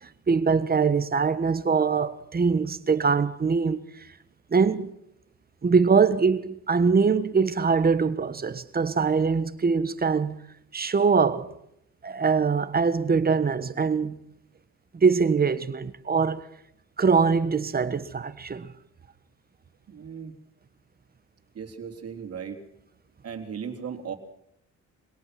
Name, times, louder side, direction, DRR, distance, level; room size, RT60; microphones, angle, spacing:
voice 1, 0.0-3.8 4.5-4.9 5.6-10.4 10.7-11.5 12.0-14.2 14.9-16.4 17.0-18.7, right 5 dB, 30° right, 1.5 m, -23 dB
voice 2, 19.9-20.3 21.6-22.6 23.2-24.1, right 7 dB, 50° right, 3.5 m, -36 dB
24.0 x 18.0 x 6.0 m
cardioid pair, 90°, 30 cm